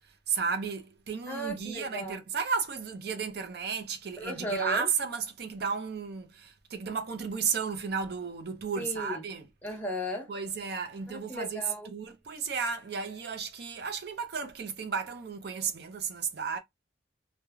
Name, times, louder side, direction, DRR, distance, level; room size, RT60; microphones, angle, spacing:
voice 1, 0.3-9.5 10.3-11.6 11.9-16.6, right 5 dB, 55° right, 0.5 m, -33 dB
voice 2, 1.3-2.2 4.2-4.9 8.8-9.2 9.6-10.3 11.1-11.9, equal, 10° left, 0.7 m, -35 dB
3.0 x 2.1 x 2.3 m
head